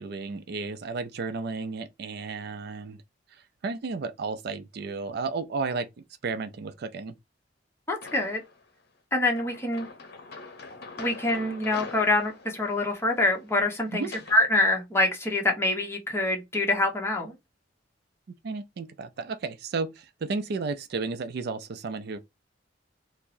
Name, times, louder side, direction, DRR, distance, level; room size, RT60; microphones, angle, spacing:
voice 1, 0.0-3.0 3.6-5.9 6.2-7.1 13.9-14.1 18.4-22.2, right 4 dB, 60° right, 0.4 m, -33 dB
voice 2, 7.9-8.4 9.1-9.9 11.0-17.3, left 2 dB, 15° left, 0.8 m, -25 dB
sound 1, 8.0-8.6 9.4-14.4, left 3 dB, 60° left, 0.7 m, -43 dB
4.5 x 2.0 x 2.6 m
head